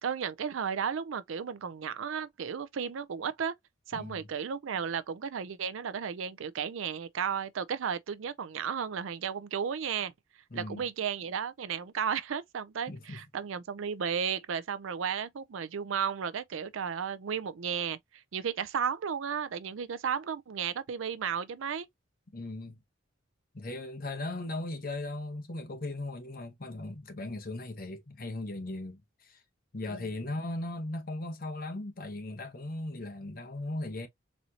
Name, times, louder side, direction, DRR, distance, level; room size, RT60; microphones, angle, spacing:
voice 1, 0.0-3.5 3.9-10.1 10.5-18.0 18.3-21.9 29.9-30.0, right 7 dB, 80° right, 0.4 m, -34 dB
voice 2, 3.9-4.3 10.5-10.9 12.9-13.2 22.3-22.8 23.5-29.4 29.7-34.1, left 2 dB, 45° left, 0.9 m, -38 dB
4.2 x 2.6 x 2.8 m
head